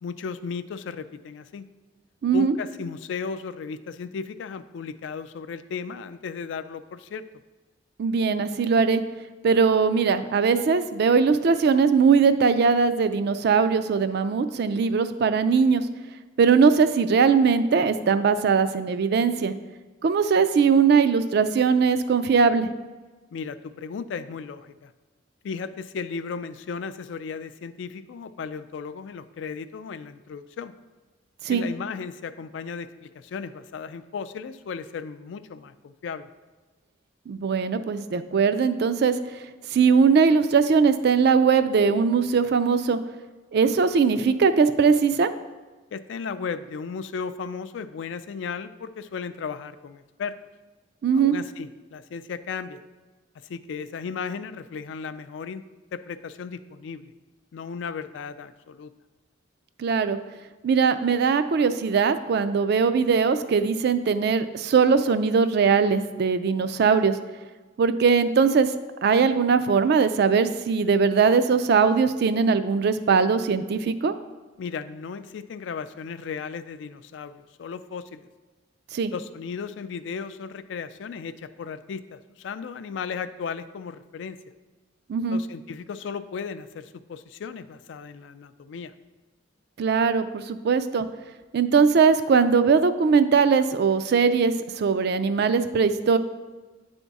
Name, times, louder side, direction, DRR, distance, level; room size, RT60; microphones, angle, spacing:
voice 1, 0.0-1.6 2.3-7.2 23.3-24.9 25.4-30.7 31.5-32.9 33.2-36.3 45.9-50.4 51.1-52.8 53.5-55.6 55.9-57.1 57.5-58.9 74.6-77.3 77.6-78.3 79.1-84.4 85.3-88.9, left 5 dB, 70° left, 12 dB, 0.3 m, -35 dB
voice 2, 2.2-2.5 8.0-9.0 9.4-15.8 16.4-19.5 20.0-22.7 31.4-31.6 37.3-39.1 39.7-43.0 43.5-45.3 51.0-51.4 59.8-60.2 60.6-67.2 67.8-68.7 69.0-74.1 78.9-79.1 85.1-85.4 89.8-91.1 91.5-96.2, right 5 dB, 55° right, 11 dB, 0.3 m, -20 dB
9.2 x 3.5 x 4.0 m, 1.3 s
head